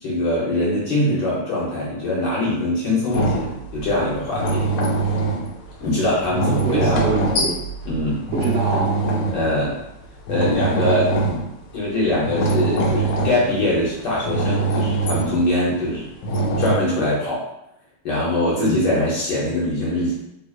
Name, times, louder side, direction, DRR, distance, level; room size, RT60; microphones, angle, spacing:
voice 1, 0.0-3.5 3.7-4.7 5.8-7.1 7.9-8.2 9.3-9.8 10.3-11.1 11.7-16.1 16.6-17.4 18.0-20.1, left 1 dB, 60° left, -6 dB, 1.3 m, -22 dB
sound 1, 3.1-9.9 10.2-11.7 12.0-13.8 14.2-15.5 16.2-16.8, right 2 dB, 80° left, 1.5 m, -23 dB
voice 2, 6.5-7.6 8.3-9.0 18.5-18.9, right 4 dB, 60° right, -4 dB, 1.0 m, -25 dB
3.8 x 2.7 x 2.4 m, 0.85 s
omnidirectional pair, 2.4 m